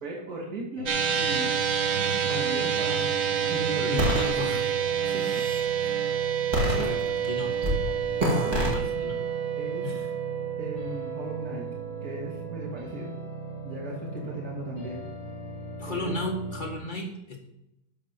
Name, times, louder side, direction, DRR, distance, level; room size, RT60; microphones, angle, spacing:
voice 1, 0.0-0.9 1.1-1.5 2.3-4.1 5.0-5.5 5.8-5.9 6.7-7.0 8.3-8.7 9.6-9.9 10.6-11.7 12.0-13.1 13.6-15.0 15.8-16.2, right 1 dB, 45° right, -3 dB, 2.5 m, -36 dB
sound 1, 0.8-16.8, right 2 dB, 80° left, 4.6 m, -39 dB
sound 2, 0.9-13.4, right 8 dB, 60° right, 0.8 m, -29 dB
voice 2, 3.7-4.7 5.2-5.7 6.6-7.6 8.0-8.1 8.5-9.2 9.8-10.1 15.8-17.4, left 1 dB, 25° left, 0 dB, 1.7 m, -35 dB
sound 3, 4.0-4.3 5.0-5.6 6.5-7.3 7.6-7.8 8.2-8.8, equal, 20° right, 2.2 m, -26 dB
12.5 x 4.6 x 5.8 m, 0.84 s
omnidirectional pair, 2.2 m